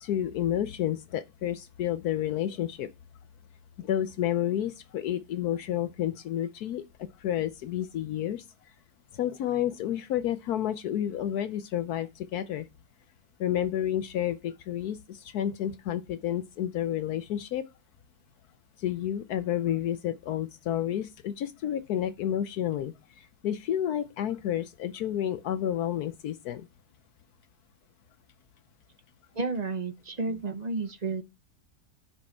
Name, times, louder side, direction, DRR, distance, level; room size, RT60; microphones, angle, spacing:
voice 1, 0.0-2.9 3.8-8.4 9.1-12.7 13.4-17.6 18.8-26.7, left 11 dB, 75° left, 1.2 m, -30 dB
voice 2, 29.3-31.2, right 3 dB, 30° right, 0.9 m, -31 dB
9.6 x 6.2 x 4.4 m
omnidirectional pair, 1.7 m